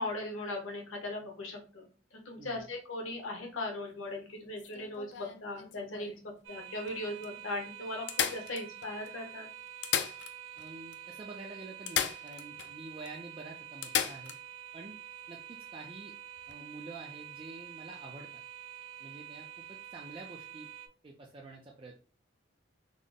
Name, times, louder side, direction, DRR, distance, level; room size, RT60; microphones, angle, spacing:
voice 1, 0.0-9.5, left 2 dB, 90° left, 2 dB, 0.9 m, -39 dB
voice 2, 2.4-2.7 10.6-14.3 14.7-14.9 15.3-16.1 16.5-18.3 19.0-20.7 21.0-22.0, right 2 dB, 25° right, 0 dB, 0.4 m, -48 dB
sound 1, 4.6-6.2 6.9-7.0 7.2-7.3 8.1-9.1 9.7-10.7 10.9-11.0 11.9-12.7 13.0-13.1 13.8-14.4 16.4-16.5, left 9 dB, 60° left, 0.3 m, -35 dB
sound 2, 6.4-20.9, right 11 dB, 85° right, 0.6 m, -47 dB
3.8 x 2.0 x 3.4 m, 0.37 s
head